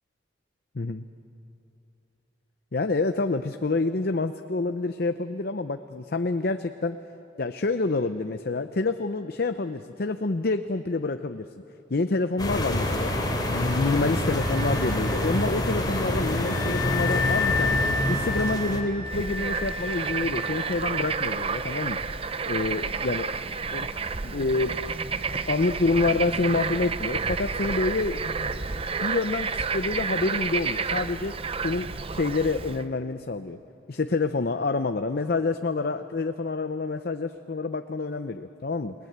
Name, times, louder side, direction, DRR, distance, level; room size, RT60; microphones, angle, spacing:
voice 1, 2.7-7.0 7.4-11.5 11.9-13.1 13.5-22.0 22.4-23.4 23.7-23.9 24.2-24.8 25.5-31.3 31.6-33.6 33.9-38.9, left 3 dB, 55° left, 8 dB, 0.6 m, -27 dB
sound 1, 12.4-18.8, left 1 dB, 20° left, 3.0 m, -27 dB
Wind instrument woodwind instrument, 14.1-21.5, left 4 dB, 70° right, 5.5 m, -32 dB
Bird / Frog, 19.1-32.8, right 5 dB, 30° right, 0.6 m, -30 dB
29.5 x 20.0 x 8.1 m, 2.7 s
head